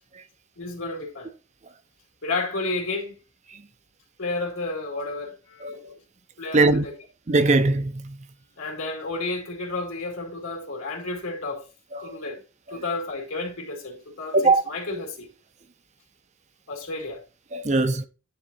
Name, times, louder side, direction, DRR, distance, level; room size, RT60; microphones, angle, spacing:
voice 1, 0.6-1.3 2.2-3.2 4.2-6.0 6.4-6.9 8.6-11.6 12.0-12.4 12.7-15.3 16.7-17.2, left 3 dB, 75° left, 2.4 m, -31 dB
voice 2, 5.6-5.9 6.5-6.8 7.3-8.2 11.9-12.2 12.7-12.8 14.3-14.6 17.5-18.1, right 3 dB, 30° right, 0.5 m, -21 dB
9.5 x 3.6 x 4.1 m
head